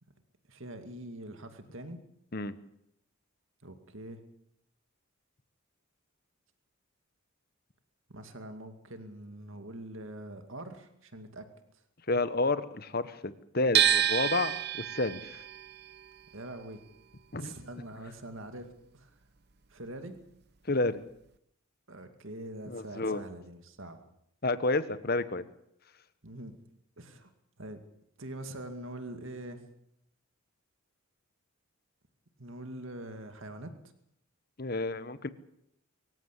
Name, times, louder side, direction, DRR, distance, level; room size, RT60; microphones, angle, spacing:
voice 1, 0.5-2.0 3.6-4.2 8.1-11.5 16.3-16.8 17.4-19.1 19.7-20.2 21.9-24.0 26.2-26.6 27.0-27.3 27.6-27.8 28.2-29.6 32.4-33.7, right 1 dB, 65° right, 7 dB, 2.3 m, -44 dB
voice 2, 12.1-15.3 17.3-17.6 20.7-21.0 22.7-23.2 24.4-25.4 34.6-35.3, left 2 dB, 45° left, 13 dB, 1.2 m, -30 dB
sound 1, 13.7-19.8 20.0-21.3, right 10 dB, 50° right, 0.9 m, -31 dB
24.0 x 15.0 x 8.3 m, 0.75 s
head